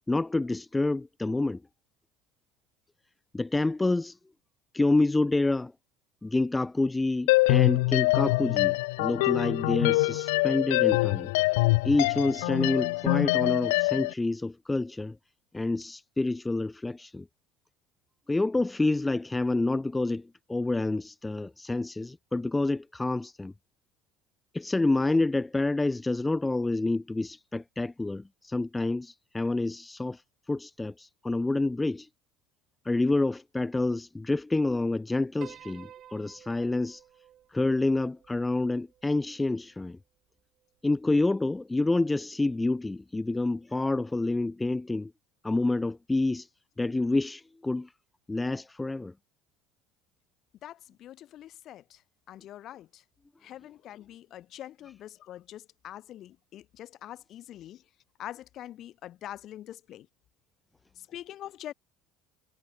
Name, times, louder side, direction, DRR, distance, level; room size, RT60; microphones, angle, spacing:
voice 1, 0.1-1.6 3.3-4.2 4.7-5.7 6.2-11.3 11.8-15.2 15.5-17.3 18.3-23.5 24.5-30.2 30.5-32.1 32.8-37.0 37.5-40.0 40.8-45.1 45.4-46.5 46.8-47.9 48.3-49.1, left 2 dB, 15° left, 0.8 m, -28 dB
sound 1, 7.3-14.1, left 23 dB, 80° left, 0.4 m, -24 dB
Piano, 35.4-39.8, right 11 dB, 50° right, 5.8 m, -52 dB
voice 2, 50.6-52.0 52.3-53.0 53.4-57.8 58.2-60.1 61.0-61.7, left 12 dB, 55° left, 4.3 m, -44 dB
supercardioid pair, 80°, 0 cm